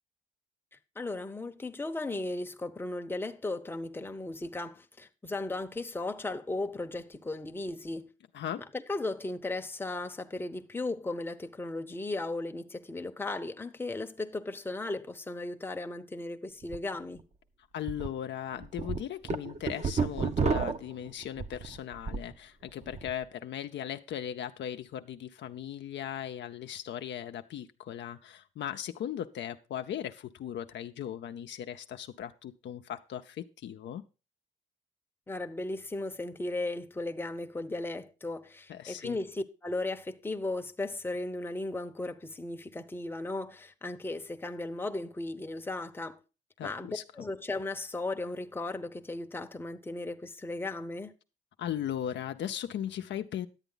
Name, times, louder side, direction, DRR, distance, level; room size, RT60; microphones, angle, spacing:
voice 1, 1.0-8.1 8.6-17.2 35.3-46.2 46.6-51.1, left 2 dB, 10° left, 0.8 m, -36 dB
sound 1, 16.6-16.8 17.2-17.3 17.9-18.1 18.5-22.3 22.7-23.1, right 5 dB, 35° right, 0.9 m, -31 dB
voice 2, 17.7-34.0 38.7-39.2 46.6-47.0 51.6-53.5, left 10 dB, 65° left, 0.6 m, -38 dB
11.0 x 8.1 x 3.9 m
cardioid pair, 90°, 20 cm